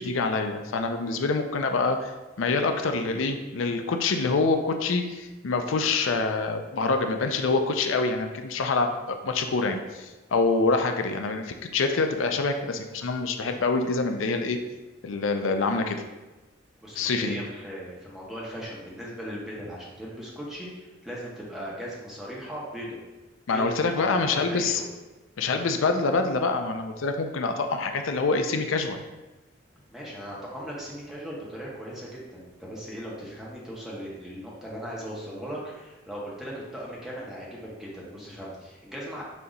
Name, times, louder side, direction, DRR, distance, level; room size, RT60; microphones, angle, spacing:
voice 1, 0.0-14.6 15.0-16.0 17.0-17.4 23.5-24.8 25.4-29.0, left 3 dB, 90° left, 6 dB, 0.5 m, -26 dB
voice 2, 16.8-23.0 23.5-24.9 29.9-39.2, equal, ahead, -5 dB, 1.2 m, -38 dB
6.2 x 2.9 x 5.3 m, 1.1 s
head